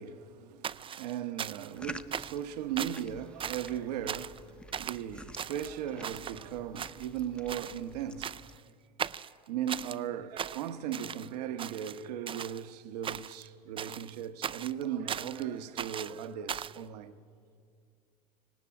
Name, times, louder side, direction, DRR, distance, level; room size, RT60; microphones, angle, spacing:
voice 1, 0.0-8.3 9.5-17.1, right 9 dB, 80° right, 1.1 m, -37 dB
sound 1, 0.6-1.8 2.1-2.5 2.8-3.1 3.4-3.8 4.1-4.4 4.7-5.0 5.4-6.4 6.7-7.2 7.5-7.8 8.2-8.6 9.0-10.0 10.4-11.3 11.6-12.6 13.0-13.5 13.8-15.4 15.8-16.8, right 8 dB, 25° right, 0.4 m, -38 dB
sound 2, 1.7-8.6, left 1 dB, 5° left, 0.9 m, -50 dB
18.5 x 18.0 x 8.6 m
hypercardioid pair, 80°, 20 cm